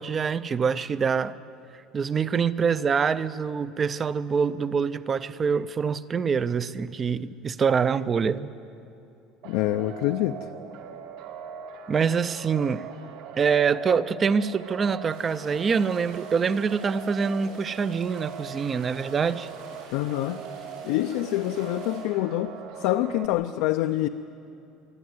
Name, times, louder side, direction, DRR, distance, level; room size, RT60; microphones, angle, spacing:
voice 1, 0.0-1.3 1.9-8.5 11.9-12.9 13.4-19.5, right 6 dB, 20° right, 16 dB, 0.5 m, -25 dB
voice 2, 9.4-10.5 19.9-20.4 20.8-24.1, left 15 dB, 70° left, 7 dB, 0.5 m, -26 dB
sound 1, 9.4-23.3, right 7 dB, 60° right, 1.5 m, -41 dB
sound 2, 15.1-22.0, right 3 dB, 75° right, 7.5 m, -50 dB
24.0 x 13.5 x 9.5 m, 2.7 s
cardioid pair, 175°, 0 cm